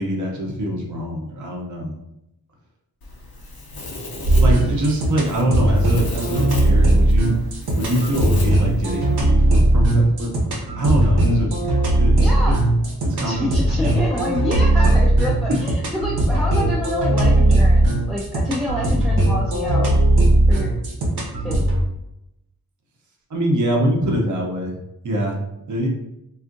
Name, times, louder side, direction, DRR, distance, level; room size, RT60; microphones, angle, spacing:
voice 1, 0.0-2.0 4.4-7.4 7.8-12.5 13.0-13.4 13.7-14.0 15.5-15.6 23.3-24.8 25.0-25.4 25.7-25.9, right 1 dB, 50° right, -1 dB, 0.7 m, -24 dB
Domestic sounds home sounds, 3.0-9.2, left 1 dB, 70° left, 0.7 m, -33 dB
sound 1, 4.2-21.8, right 1 dB, 80° right, 0.8 m, -18 dB
voice 2, 12.2-12.6 13.2-19.9 20.5-20.7 21.4-21.7, equal, ahead, -4 dB, 0.4 m, -27 dB
3.5 x 2.4 x 2.5 m, 0.85 s
wide cardioid pair, 90°, 38 cm